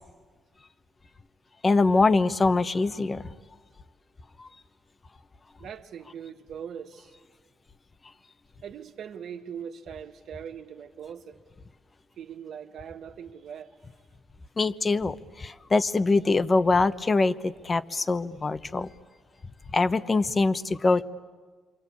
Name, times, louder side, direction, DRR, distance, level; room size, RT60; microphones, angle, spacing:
voice 1, 1.6-3.3 4.4-4.5 14.6-18.9 19.7-21.0, left 3 dB, 30° left, 12 dB, 1.0 m, -23 dB
voice 2, 5.6-7.1 8.6-11.4 12.2-13.7, right 8 dB, 70° right, 5 dB, 1.7 m, -41 dB
27.5 x 25.0 x 8.5 m, 1.5 s
cardioid pair, 90°, 0 cm